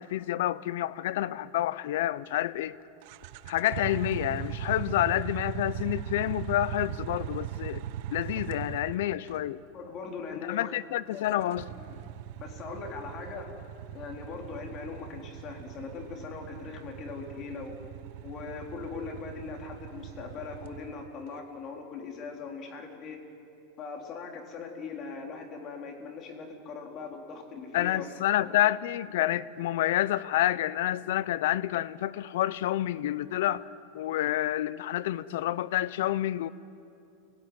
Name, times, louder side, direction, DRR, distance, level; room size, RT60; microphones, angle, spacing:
voice 1, 0.0-2.8 3.5-7.8 8.1-9.6 10.4-11.7 27.7-33.7 33.9-36.5, left 13 dB, 70° left, 0.7 m, -28 dB
sound 1, 3.0-9.4 11.2-21.3, right 11 dB, 55° right, 0.9 m, -39 dB
voice 2, 9.7-10.8 11.1-12.0 12.4-13.5 13.9-17.8 18.2-23.2 23.8-28.1 28.4-28.6, left 5 dB, 35° left, 3.9 m, -40 dB
29.5 x 17.5 x 9.6 m
supercardioid pair, 145°, 0 cm